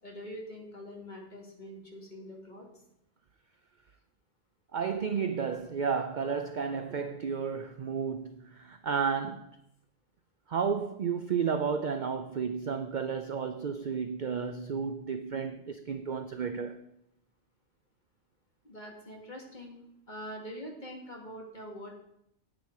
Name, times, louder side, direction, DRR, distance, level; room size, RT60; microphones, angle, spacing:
voice 1, 0.0-2.9 18.6-21.9, equal, 35° left, 2.4 m, -44 dB
voice 2, 4.7-9.6 10.5-16.8, right 6 dB, 55° right, 0.5 m, -32 dB
9.8 x 9.0 x 4.8 m
omnidirectional pair, 1.3 m